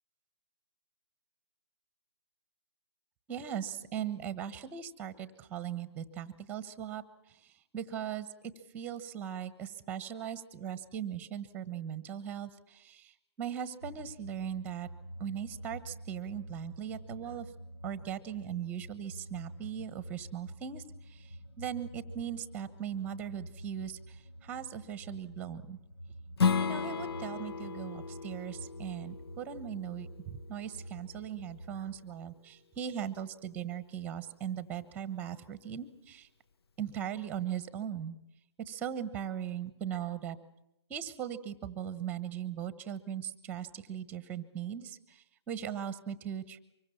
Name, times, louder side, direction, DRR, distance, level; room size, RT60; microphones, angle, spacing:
voice 1, 3.3-14.9 15.2-17.5 17.8-25.8 26.6-36.3 36.8-38.2 38.6-40.4 40.9-46.6, right 9 dB, 10° right, 14 dB, 1.2 m, -39 dB
sound 1, 13.8-32.0, equal, 85° left, 6.9 m, -48 dB
Strum, 26.4-31.6, left 5 dB, 60° left, 1.0 m, -34 dB
25.0 x 22.5 x 7.2 m, 0.82 s
hypercardioid pair, 155°, 15 cm